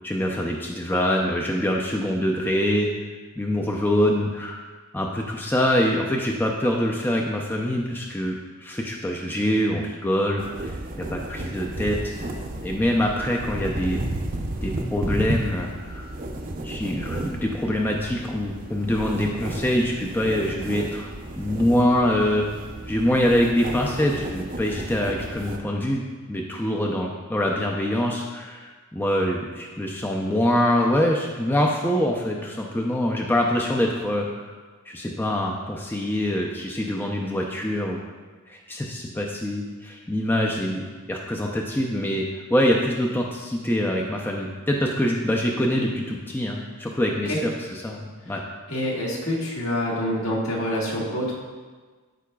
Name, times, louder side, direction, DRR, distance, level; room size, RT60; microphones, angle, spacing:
voice 1, 0.0-2.9 3.4-4.6 4.9-8.4 8.6-12.1 12.6-14.1 14.6-16.1 16.6-21.1 21.3-26.0 26.3-34.5 34.9-38.0 38.5-40.8 41.1-48.4, left 1 dB, 10° left, 0 dB, 0.5 m, -24 dB
sound 1, 10.4-25.6, right 1 dB, 40° right, 0.6 m, -33 dB
voice 2, 48.7-51.3, left 1 dB, 70° left, -4 dB, 1.7 m, -26 dB
13.0 x 4.8 x 2.3 m, 1.4 s
head